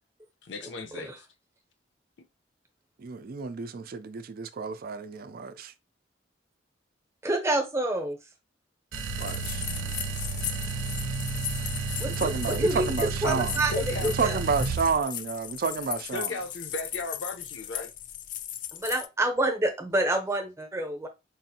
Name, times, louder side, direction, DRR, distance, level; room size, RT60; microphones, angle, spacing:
voice 1, 0.4-1.3 2.2-2.3 13.2-14.1 16.1-17.9, left 3 dB, 75° left, 0.7 m, -36 dB
voice 2, 3.0-5.7 9.2-9.6 12.0-13.6 14.0-16.4, right 5 dB, 50° right, 0.4 m, -30 dB
voice 3, 7.2-8.2 12.0-13.7 14.0-14.4 18.7-21.1, right 1 dB, 15° right, 0.7 m, -28 dB
sound 1, 8.9-15.0, right 3 dB, 90° right, 0.7 m, -32 dB
sound 2, 9.2-19.1, left 11 dB, 45° left, 0.3 m, -38 dB
4.6 x 2.5 x 2.7 m
head